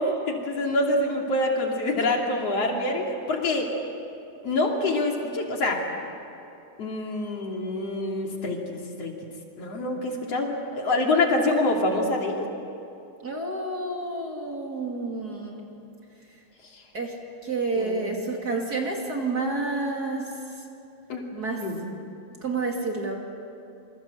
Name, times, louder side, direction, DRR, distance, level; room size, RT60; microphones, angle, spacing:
voice 1, 0.0-3.7 4.4-5.8 6.8-9.1 9.6-12.5 16.7-16.8 17.8-18.1 21.1-21.2 21.6-21.8, left 2 dB, 55° left, 1 dB, 3.7 m, -26 dB
voice 2, 13.2-15.7 16.9-17.2 17.4-20.6 21.3-21.6 22.4-23.2, right 3 dB, 35° right, 0 dB, 3.0 m, -29 dB
27.0 x 25.5 x 8.2 m, 2.7 s
omnidirectional pair, 3.3 m